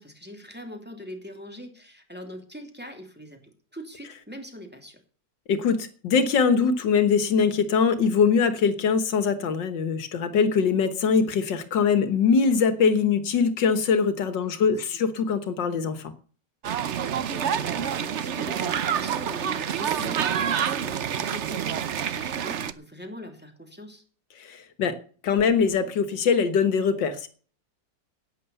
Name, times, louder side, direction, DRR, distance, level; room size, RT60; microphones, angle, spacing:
voice 1, 0.0-3.4 3.7-5.0 14.4-15.1 17.0-24.0, equal, 5° right, 3 dB, 2.8 m, -42 dB
voice 2, 5.5-16.1 24.4-25.0 25.2-27.3, left 6 dB, 80° left, 11 dB, 2.0 m, -22 dB
sound 1, 16.6-22.7, right 8 dB, 55° right, 0.8 m, -27 dB
11.0 x 9.7 x 7.0 m, 0.43 s
omnidirectional pair, 1.9 m